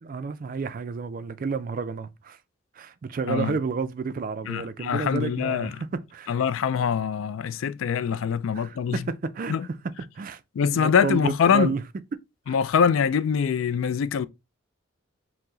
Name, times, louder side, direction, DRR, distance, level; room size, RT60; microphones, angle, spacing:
voice 1, 0.0-2.4 2.8-6.3 8.5-11.8 12.5-12.6, right 5 dB, 40° right, 0.3 m, -31 dB
voice 2, 4.5-5.7 6.3-9.0 9.5-9.7 10.6-11.7 12.5-14.3, left 7 dB, 70° left, 0.3 m, -24 dB
4.6 x 2.1 x 3.7 m
head